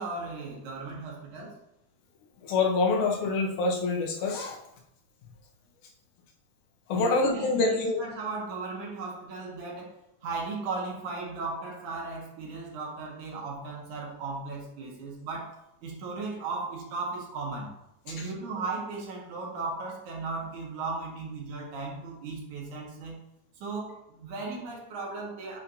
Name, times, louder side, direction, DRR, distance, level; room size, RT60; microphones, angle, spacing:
voice 1, 0.0-1.6 6.9-10.0 10.2-15.5 15.8-17.7 18.0-23.2 23.6-25.6, right 3 dB, 85° right, -2 dB, 3.0 m, -36 dB
voice 2, 2.4-4.6 6.9-8.0 18.2-18.3, left 3 dB, 85° left, 1 dB, 2.6 m, -26 dB
8.4 x 5.6 x 2.8 m, 0.82 s
omnidirectional pair, 3.4 m